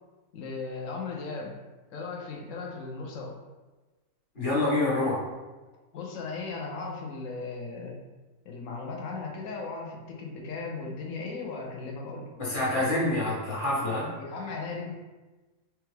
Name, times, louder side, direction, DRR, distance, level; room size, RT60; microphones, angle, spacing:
voice 1, 0.3-1.5 1.9-3.4 5.9-8.0 8.4-12.3 12.8-12.9 14.2-14.9, left 4 dB, 65° left, -1 dB, 0.9 m, -37 dB
voice 2, 4.3-5.3 12.4-14.1, left 2 dB, 40° left, -6 dB, 0.9 m, -27 dB
3.2 x 2.4 x 3.1 m, 1.2 s
omnidirectional pair, 1.6 m